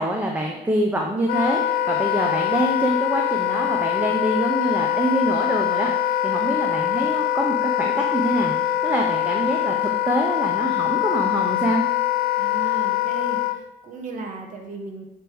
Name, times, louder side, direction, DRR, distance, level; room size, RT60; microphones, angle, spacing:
voice 1, 0.0-11.8, right 1 dB, 10° right, 0 dB, 0.7 m, -25 dB
Wind instrument woodwind instrument, 1.3-13.6, left 12 dB, 65° left, 0.6 m, -23 dB
voice 2, 12.4-15.0, right 3 dB, 50° right, 2 dB, 1.3 m, -36 dB
7.5 x 3.5 x 4.6 m, 1.0 s
cardioid pair, 110°, 17 cm